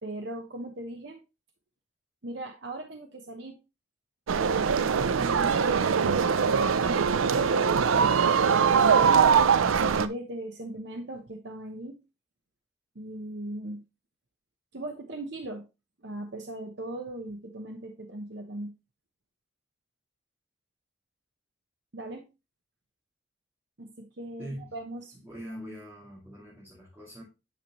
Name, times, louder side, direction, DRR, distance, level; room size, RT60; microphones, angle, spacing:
voice 1, 0.0-1.2 2.2-3.6 4.3-4.7 5.1-6.4 6.8-8.3 8.7-9.2 9.6-12.0 12.9-13.8 14.7-15.7 16.0-18.7 21.9-22.3 23.8-25.1, right 1 dB, 60° right, 4 dB, 0.9 m, -38 dB
sound 1, 4.3-10.1, right 6 dB, 90° right, 0.4 m, -22 dB
voice 2, 24.4-24.8 25.2-27.2, equal, 10° right, -7 dB, 2.3 m, -42 dB
8.8 x 5.0 x 3.0 m, 0.27 s
head